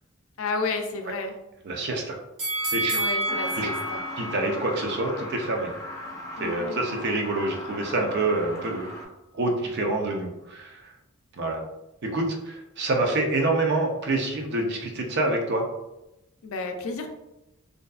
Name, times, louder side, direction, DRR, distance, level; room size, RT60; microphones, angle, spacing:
voice 1, 0.4-1.4 2.9-4.0 6.4-6.8 16.4-17.1, left 3 dB, 70° left, 5 dB, 0.4 m, -31 dB
voice 2, 1.6-2.2 2.7-3.0 3.6-3.7 4.2-5.7 6.4-8.9 9.3-10.8 11.4-11.6 12.0-15.7, right 2 dB, 55° right, 2 dB, 0.5 m, -27 dB
sound 1, 2.4-5.5 5.9-6.0, right 1 dB, 85° right, 1.0 m, -30 dB
Truck, 3.3-9.0, left 1 dB, 15° left, 0.5 m, -38 dB
2.6 x 2.3 x 2.3 m, 0.93 s
head